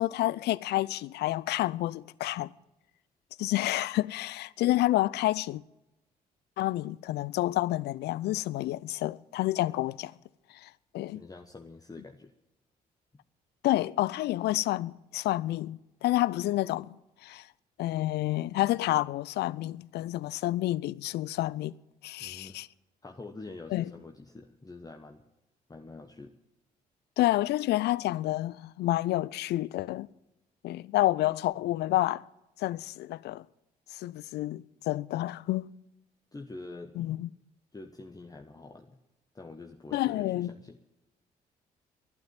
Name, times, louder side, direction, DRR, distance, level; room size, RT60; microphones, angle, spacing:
voice 1, 0.0-2.5 3.4-5.6 6.6-10.1 10.6-11.2 13.6-16.9 17.2-17.5 17.8-21.8 22.0-22.7 23.7-23.9 27.2-30.1 30.6-32.2 32.6-33.4 33.9-35.7 37.0-37.3 39.9-40.5, left 16 dB, 60° left, 0.5 m, -29 dB
voice 2, 11.1-12.3 22.2-22.7 23.0-25.2 25.7-26.3 36.3-37.0 37.7-39.0 39.3-40.8, left 3 dB, 20° left, 1.1 m, -46 dB
12.0 x 12.0 x 9.1 m
figure-of-eight pair, 45°, 20 cm